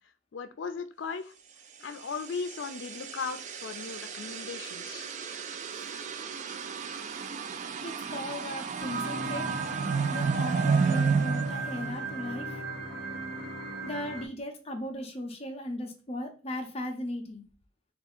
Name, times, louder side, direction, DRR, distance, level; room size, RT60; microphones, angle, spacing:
voice 1, 0.3-1.3 1.8-5.1, left 5 dB, 75° left, 10 dB, 0.4 m, -37 dB
sound 1, 1.9-12.6, right 5 dB, 40° right, 0.3 m, -32 dB
voice 2, 7.8-9.5 10.1-12.6 13.8-17.4, left 1 dB, 35° left, 5 dB, 0.6 m, -37 dB
sound 2, 8.8-14.3, right 3 dB, 75° right, 1.0 m, -36 dB
3.5 x 2.4 x 4.3 m, 0.35 s
head